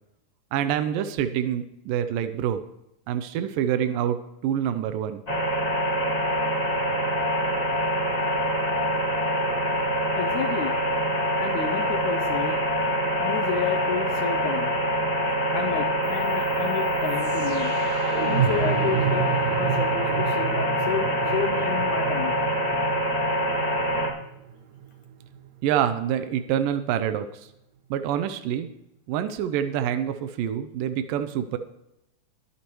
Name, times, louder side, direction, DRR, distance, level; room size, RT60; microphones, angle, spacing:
voice 1, 0.5-2.6 3.1-5.2 25.6-27.4 27.9-28.7 29.1-31.6, right 10 dB, 85° right, 9 dB, 2.4 m, -26 dB
sound 1, 5.3-24.1, equal, 25° left, 0.8 m, -25 dB
voice 2, 10.2-10.7 11.4-12.6 13.2-14.7 15.5-17.7 18.3-22.3, left 8 dB, 75° left, 5 dB, 1.9 m, -31 dB
sound 2, 16.1-26.1, right 9 dB, 70° right, 2.0 m, -31 dB
22.5 x 8.4 x 3.1 m, 0.85 s
omnidirectional pair, 3.9 m